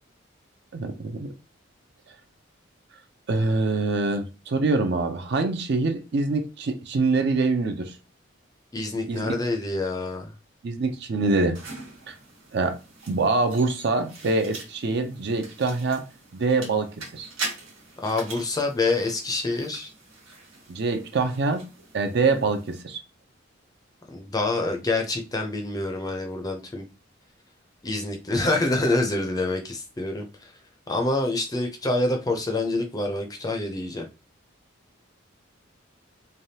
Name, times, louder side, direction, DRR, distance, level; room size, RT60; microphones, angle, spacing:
voice 1, 0.7-1.3 3.3-8.0 9.1-9.3 10.6-11.6 12.1-12.2 12.5-12.8 13.1-16.0 16.3-17.3 20.7-21.7 21.9-23.0, right 3 dB, 55° right, 0.5 m, -25 dB
voice 2, 8.7-10.3 18.0-19.9 24.1-26.8 27.8-30.5 30.9-34.1, left 2 dB, 20° left, 0.4 m, -26 dB
sound 1, 11.6-22.8, right 3 dB, 85° right, 1.4 m, -42 dB
3.3 x 2.3 x 2.7 m
head